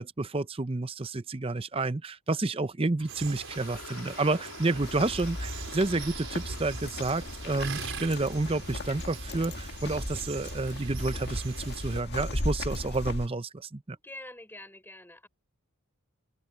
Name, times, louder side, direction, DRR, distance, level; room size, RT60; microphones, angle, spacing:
voice 1, 0.0-14.0, right 2 dB, 25° right, 0.6 m, -30 dB
sound 1, 3.0-9.3, left 4 dB, 80° left, 3.1 m, -48 dB
sound 2, 3.1-12.0, right 4 dB, 60° right, 5.6 m, -42 dB
sound 3, 4.8-13.3, left 1 dB, 50° left, 2.0 m, -37 dB
voice 2, 13.9-15.3, left 2 dB, 10° left, 5.9 m, -46 dB
open air
head